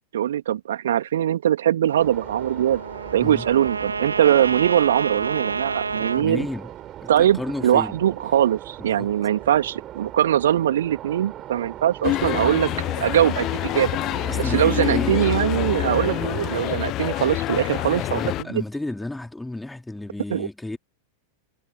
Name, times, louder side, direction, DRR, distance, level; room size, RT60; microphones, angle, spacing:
voice 1, 0.1-2.8 3.1-6.4 7.1-12.7 13.0-13.9 14.4-18.6 20.3-20.5, right 11 dB, 60° right, 2.9 m, -21 dB
sound 1, 1.9-16.6, right 12 dB, 30° right, 6.9 m, -39 dB
Trumpet, 1.9-6.2, right 4 dB, 75° right, 3.5 m, -29 dB
voice 2, 6.0-6.7 7.0-8.0 8.8-9.1 14.3-15.2 17.9-20.8, left 2 dB, 5° left, 3.0 m, -32 dB
sound 2, 12.0-18.4, left 16 dB, 35° left, 1.1 m, -26 dB
figure-of-eight pair, 90°, 0 cm